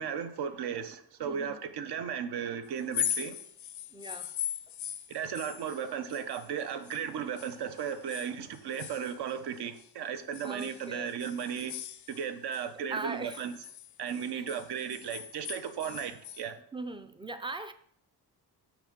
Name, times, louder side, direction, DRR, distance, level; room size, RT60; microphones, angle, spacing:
voice 1, 0.0-3.4 5.1-11.7 12.1-13.5 14.0-16.6, right 8 dB, 70° right, 0.9 m, -35 dB
voice 2, 1.3-1.7 3.9-4.4 10.4-11.2 12.9-13.5 14.3-14.5 16.7-17.7, right 2 dB, 15° right, 0.3 m, -40 dB
sound 1, 2.8-7.1 7.4-9.9 10.3-12.7 13.0-16.5, left 10 dB, 50° left, 0.4 m, -40 dB
6.0 x 5.0 x 5.3 m
cardioid pair, 155°, 41 cm